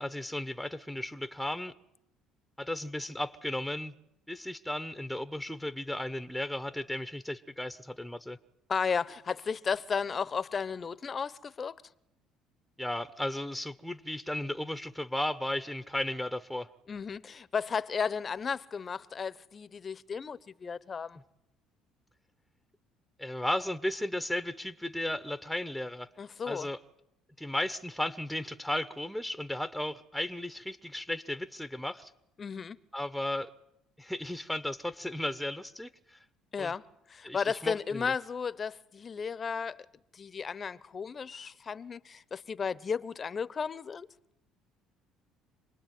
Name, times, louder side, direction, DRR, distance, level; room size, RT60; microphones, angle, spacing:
voice 1, 0.0-1.7 2.6-3.9 4.3-8.4 12.8-16.7 23.2-26.1 26.5-26.8 27.4-32.1 32.9-33.5 34.0-36.2 36.6-36.7 37.2-38.1, left 1 dB, ahead, 1.0 m, -35 dB
voice 2, 8.7-11.7 16.9-21.2 26.2-26.7 32.4-32.8 36.5-36.8 37.1-39.8 40.1-44.1, left 6 dB, 35° left, 1.0 m, -34 dB
27.0 x 20.0 x 9.4 m
supercardioid pair, 95°, 0 cm